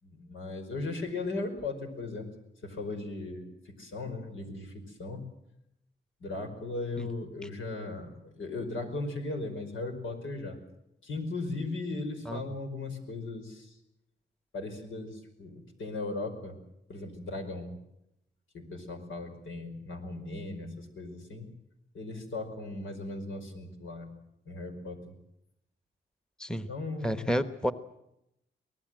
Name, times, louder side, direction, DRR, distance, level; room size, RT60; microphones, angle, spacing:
voice 1, 0.0-2.3 2.6-5.2 6.2-10.6 11.0-13.8 14.5-16.6 16.9-17.8 18.5-21.5 21.9-24.1 24.5-25.1 26.7-27.3, left 2 dB, 85° left, 5 dB, 5.3 m, -37 dB
voice 2, 27.0-27.7, equal, 5° left, 11 dB, 1.1 m, -30 dB
24.5 x 19.0 x 7.7 m, 0.81 s
cardioid pair, 100°, 20 cm